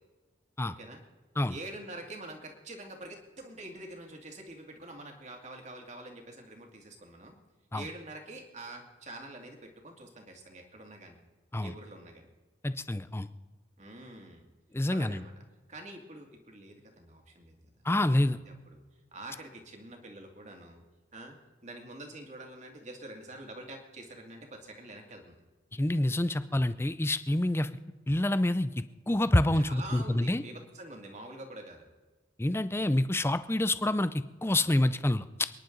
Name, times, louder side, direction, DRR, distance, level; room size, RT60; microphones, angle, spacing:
voice 1, 0.6-1.0 1.5-7.4 7.7-11.2 11.6-12.3 13.8-14.5 14.9-15.3 15.7-18.8 19.1-20.8 21.1-21.4 21.6-25.4 29.5-31.9 33.2-33.3, right 2 dB, 35° right, 2 dB, 2.4 m, -46 dB
voice 2, 12.6-13.3 14.7-15.2 17.9-18.4 25.8-27.7 28.1-28.7 29.1-30.4 32.4-35.5, left 1 dB, 10° left, 13 dB, 0.5 m, -27 dB
28.5 x 10.5 x 3.9 m, 1.3 s
head